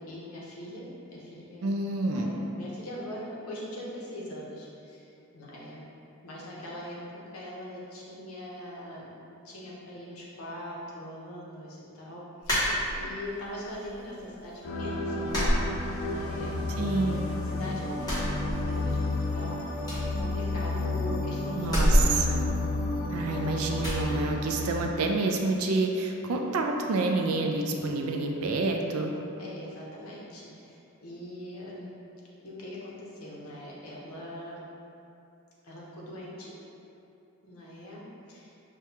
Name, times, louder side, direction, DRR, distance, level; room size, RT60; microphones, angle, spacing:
voice 1, 0.0-1.7 2.1-5.1 5.3-5.8 6.2-7.0 7.3-9.1 9.4-15.7 16.0-17.2 17.5-22.6 29.4-31.9 32.4-34.6 35.6-36.5 37.4-38.0 38.3-38.5, left 1 dB, 80° left, -5 dB, 0.9 m, -42 dB
voice 2, 1.6-2.3 16.8-17.3 21.6-22.4 23.1-29.1, right 3 dB, 90° right, 3 dB, 0.4 m, -28 dB
sound 1, 12.4-13.3 13.7-14.4 14.7-14.8 15.3-16.4 16.7-17.5 17.9-19.1 19.4-19.5 19.8-21.0 21.6-23.3 23.8-24.1, equal, 20° left, 1.1 m, -28 dB
sound 2, 14.6-24.9, left 2 dB, 65° left, 0.5 m, -31 dB
6.1 x 2.3 x 2.8 m, 2.7 s
head